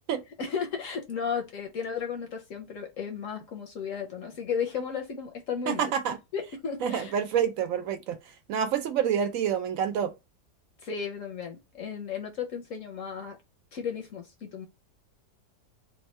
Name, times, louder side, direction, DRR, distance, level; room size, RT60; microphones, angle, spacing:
voice 1, 0.4-5.9 6.3-7.1 10.8-13.4 13.7-14.7, left 6 dB, 60° left, 0.9 m, -34 dB
voice 2, 5.7-6.2 6.8-8.2 8.5-10.1, right 8 dB, 70° right, 0.8 m, -27 dB
3.5 x 2.2 x 4.2 m
omnidirectional pair, 1.8 m